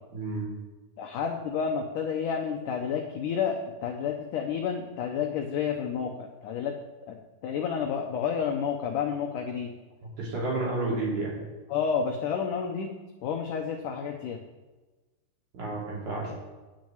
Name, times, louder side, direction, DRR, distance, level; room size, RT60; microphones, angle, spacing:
voice 1, 0.1-0.5 10.2-11.4 15.5-16.3, right 2 dB, 50° right, -4 dB, 3.9 m, -31 dB
voice 2, 1.0-6.8 7.1-7.2 7.4-9.7 11.7-12.9 13.2-14.4, left 7 dB, 80° left, 3 dB, 1.8 m, -30 dB
10.0 x 6.3 x 8.8 m, 1.2 s
omnidirectional pair, 4.9 m